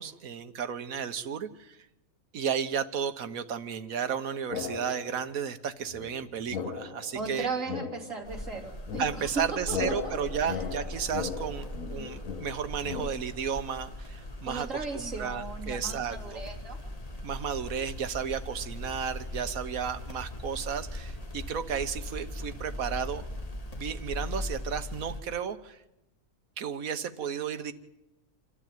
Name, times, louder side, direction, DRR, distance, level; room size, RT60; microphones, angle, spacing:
voice 1, 0.0-1.8 2.3-7.5 9.0-16.4 17.2-23.3 23.7-25.8 26.6-27.7, right 7 dB, 85° right, 11 dB, 1.5 m, -33 dB
sound 1, 4.5-5.3 5.9-13.2, left 6 dB, 75° left, 1.5 m, -38 dB
voice 2, 7.1-9.4 9.7-9.8 10.0-10.2 10.4-10.6 14.5-16.8, right 4 dB, 65° right, 1 dB, 3.4 m, -36 dB
sound 2, 8.2-25.2, left 1 dB, 25° left, 1.9 m, -40 dB
27.0 x 12.0 x 9.2 m, 0.92 s
omnidirectional pair, 1.4 m